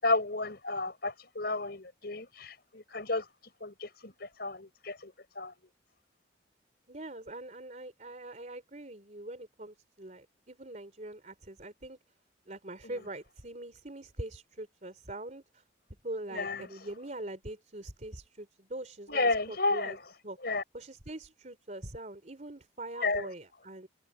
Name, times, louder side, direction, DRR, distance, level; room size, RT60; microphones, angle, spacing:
voice 1, 0.0-3.3 3.6-5.5 16.3-16.7 19.1-20.0 20.4-20.6 23.0-23.3, left 3 dB, 55° left, 5.9 m, -32 dB
voice 2, 6.9-12.0 12.5-15.6 16.0-20.0 20.2-20.4 20.7-23.9, right 1 dB, 40° right, 3.9 m, -43 dB
head